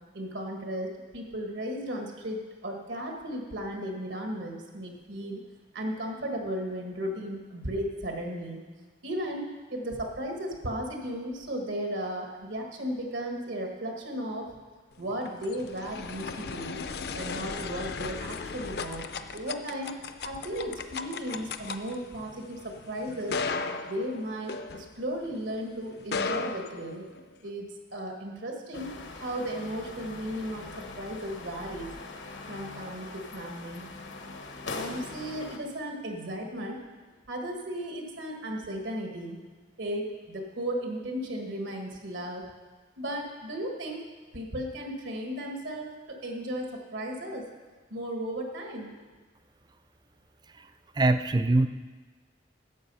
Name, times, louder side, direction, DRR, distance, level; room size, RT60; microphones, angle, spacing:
voice 1, 0.1-5.4 5.7-8.6 9.0-14.5 15.0-16.8 17.1-19.9 20.2-23.4 23.9-27.0 27.4-31.9 32.5-33.9 34.7-36.8 37.3-39.4 39.8-42.5 43.0-44.0 44.3-47.5 47.9-49.0, equal, 85° right, 2 dB, 1.5 m, -35 dB
sound 1, 15.0-25.4 26.0-27.5, left 4 dB, 55° left, 0.5 m, -36 dB
sound 2, 28.7-35.6, left 3 dB, 80° left, 1.1 m, -42 dB
voice 2, 51.0-51.7, right 2 dB, 20° right, 11 dB, 0.4 m, -23 dB
11.5 x 7.8 x 5.4 m, 1.3 s
head